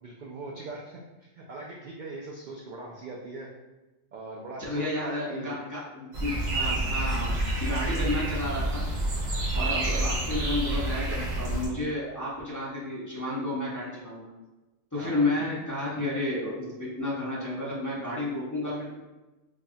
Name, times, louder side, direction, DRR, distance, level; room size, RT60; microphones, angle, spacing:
voice 1, 0.0-3.5 4.1-5.5 7.9-8.2 9.5-9.9 15.0-15.3, right 2 dB, 70° right, -2 dB, 0.4 m, -41 dB
voice 2, 4.6-8.9 9.5-14.3 14.9-18.9, left 2 dB, 15° left, -8 dB, 0.7 m, -31 dB
sound 1, 6.1-11.7, right 1 dB, 90° right, 1.3 m, -28 dB
5.0 x 2.3 x 2.7 m, 1.1 s
omnidirectional pair, 1.3 m